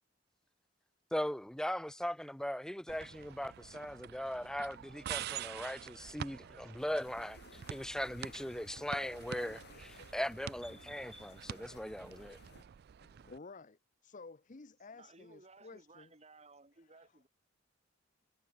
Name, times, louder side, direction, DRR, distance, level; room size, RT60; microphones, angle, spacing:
voice 1, 1.1-12.4, equal, 5° left, 0.5 m, -39 dB
sound 1, 2.9-13.4, right 9 dB, 55° right, 0.3 m, -47 dB
sound 2, 6.8-12.6, left 3 dB, 60° left, 7.0 m, -58 dB
voice 2, 13.0-16.1 16.9-17.1, left 3 dB, 40° left, 0.7 m, -53 dB
voice 3, 14.9-17.3, right 3 dB, 35° right, 3.3 m, -59 dB
head